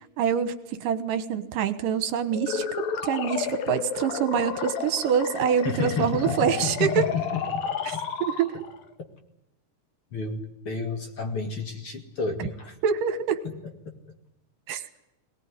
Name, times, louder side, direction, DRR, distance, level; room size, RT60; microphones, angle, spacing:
voice 1, 0.0-7.0 7.9-8.5 12.4-12.5 12.8-13.4 14.7-14.8, right 8 dB, 75° right, 11 dB, 3.0 m, -26 dB
sound 1, 2.3-8.8, left 6 dB, 90° left, 3.7 m, -32 dB
voice 2, 5.6-8.1 10.1-12.8, left 4 dB, 40° left, 5 dB, 2.8 m, -31 dB
22.5 x 19.5 x 9.8 m, 0.88 s
omnidirectional pair, 4.0 m